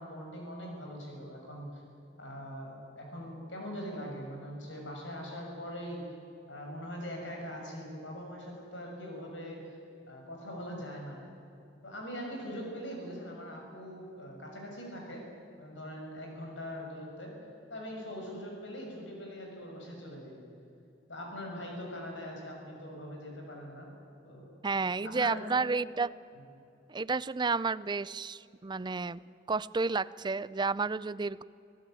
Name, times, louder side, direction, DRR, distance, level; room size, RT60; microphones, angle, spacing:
voice 1, 0.0-1.8 2.2-6.0 6.5-9.6 10.1-11.2 11.8-15.2 15.6-17.3 17.7-20.4 21.1-23.9 24.2-24.4 25.0-25.4, equal, 85° left, 0 dB, 6.5 m, -42 dB
voice 2, 24.6-26.1 26.9-29.2 29.5-31.4, right 4 dB, 25° right, 18 dB, 0.4 m, -31 dB
26.5 x 16.0 x 9.1 m, 2.7 s
head